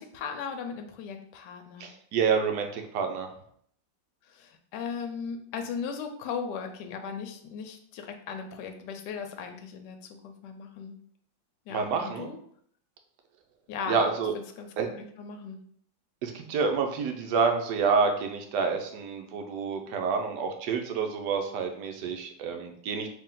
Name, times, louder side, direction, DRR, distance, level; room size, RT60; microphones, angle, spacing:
voice 1, 0.0-1.9 4.3-11.0 11.7-12.4 13.7-14.1 14.3-15.6, left 6 dB, 70° left, 5 dB, 1.1 m, -37 dB
voice 2, 1.8-3.3 11.7-12.3 13.9-14.3 14.8-14.9 16.2-23.1, right 5 dB, 70° right, 4 dB, 1.1 m, -28 dB
3.4 x 2.8 x 3.7 m, 0.64 s
omnidirectional pair, 2.0 m